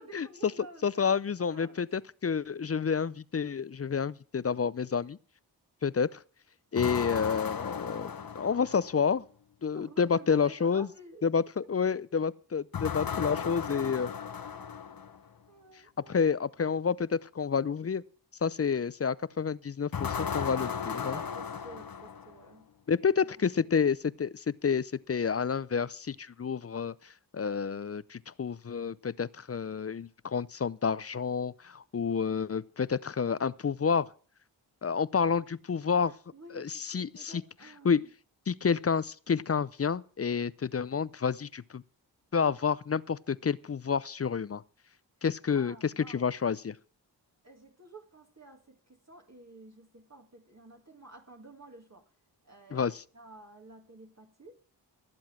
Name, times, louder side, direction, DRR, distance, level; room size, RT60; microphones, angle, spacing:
voice 1, 0.0-1.1 1.5-1.8 9.7-11.2 15.5-16.2 21.0-22.7 23.0-23.3 36.0-38.1 45.2-45.3 45.5-46.3 47.4-52.1 52.4-54.6, right 2 dB, 35° right, 2.1 m, -52 dB
voice 2, 0.8-5.2 5.8-6.2 6.7-9.2 9.6-10.9 11.2-14.1 16.1-18.0 18.4-21.2 22.9-26.9 27.3-34.1 34.8-36.1 36.5-37.3 37.8-38.0 38.5-41.8 42.3-44.6 45.2-46.8 52.7-52.9, left 6 dB, 35° left, 0.5 m, -29 dB
sound 1, 6.8-9.1 12.7-15.2 19.9-22.5, left 7 dB, 55° left, 1.1 m, -36 dB
16.5 x 7.8 x 6.3 m
cardioid pair, 50°, 43 cm